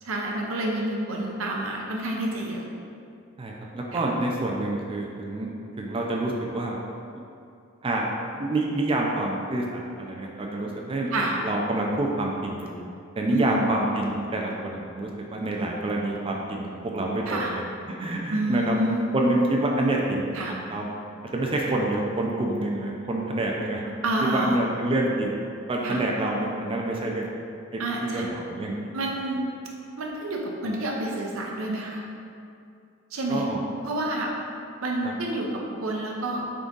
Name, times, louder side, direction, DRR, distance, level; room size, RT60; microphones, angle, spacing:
voice 1, 0.0-2.6 3.9-4.0 11.1-11.4 13.3-13.6 17.3-17.5 18.3-19.0 20.3-20.5 24.0-24.7 25.8-26.0 27.8-28.3 28.9-29.4 30.0-32.0 33.1-33.5 33.8-34.3 34.8-36.4, right 1 dB, 85° right, -1 dB, 0.7 m, -28 dB
voice 2, 3.4-6.8 7.8-8.1 8.4-9.6 10.0-11.1 11.4-12.7 13.2-17.5 18.0-18.8 19.1-20.8 21.3-23.8 24.2-25.3 25.7-27.3 27.7-28.7 33.3-33.6 35.0-35.1, right 1 dB, 25° right, -1 dB, 0.4 m, -27 dB
3.8 x 3.5 x 3.8 m, 2.5 s
head